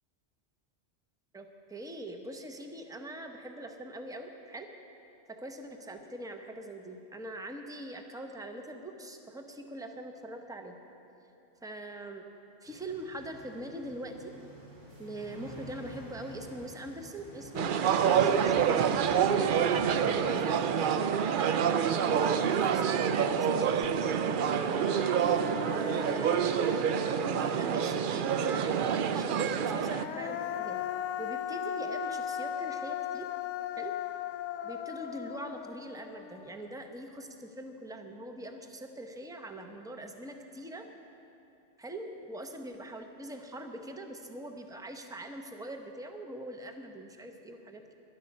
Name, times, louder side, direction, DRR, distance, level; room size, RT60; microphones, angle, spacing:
voice 1, 1.3-4.7 5.3-10.8 11.6-12.2 12.6-14.3 15.0-18.9 19.3-19.5 20.2-23.9 24.2-24.9 25.7-26.6 27.1-30.8 31.2-33.3 33.8-33.9 34.6-40.9 41.8-47.9, right 1 dB, 5° right, 4 dB, 0.7 m, -42 dB
sound 1, 12.7-20.2, equal, 85° right, 3.0 m, -49 dB
sound 2, 17.6-30.1, right 8 dB, 60° right, 0.6 m, -27 dB
Human voice, 23.8-23.9 24.3-27.9 29.6-36.9, left 9 dB, 80° left, 0.9 m, -38 dB
17.5 x 11.5 x 5.3 m, 2.9 s
omnidirectional pair, 1.2 m